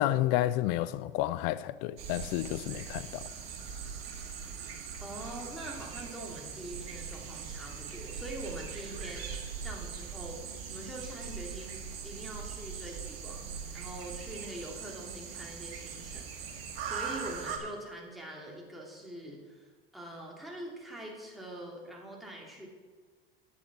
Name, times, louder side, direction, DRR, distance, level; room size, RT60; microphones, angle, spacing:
voice 1, 0.0-3.2, left 14 dB, 55° left, 0.5 m, -30 dB
sound 1, 2.0-17.6, right 6 dB, 75° right, 1.9 m, -41 dB
voice 2, 5.0-9.3 9.6-10.4 10.7-22.7, right 1 dB, ahead, 2.7 m, -44 dB
10.0 x 7.1 x 5.9 m
hypercardioid pair, 90°, 30 cm